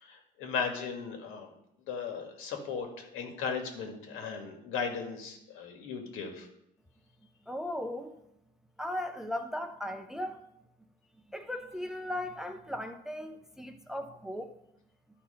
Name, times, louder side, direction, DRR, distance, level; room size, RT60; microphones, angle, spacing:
voice 1, 0.0-1.5 1.9-6.5, left 5 dB, 85° left, 3 dB, 1.9 m, -36 dB
voice 2, 7.5-8.2 8.8-10.4 11.3-14.6, left 1 dB, ahead, 6 dB, 0.5 m, -37 dB
12.5 x 4.3 x 5.6 m, 0.81 s
cardioid pair, 140°, 20 cm